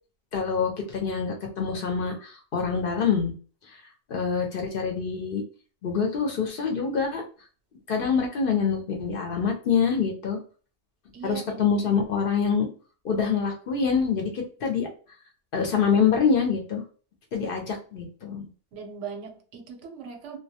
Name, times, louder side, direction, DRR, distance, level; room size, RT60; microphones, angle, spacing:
voice 1, 0.3-3.3 4.1-5.4 5.8-7.2 7.9-10.4 11.2-12.7 13.0-14.9 15.5-16.8 17.3-18.5, left 6 dB, 60° left, 0.7 m, -25 dB
voice 2, 11.1-11.7 18.7-20.4, right 6 dB, 85° right, 0.9 m, -39 dB
2.2 x 2.1 x 2.7 m
omnidirectional pair, 1.2 m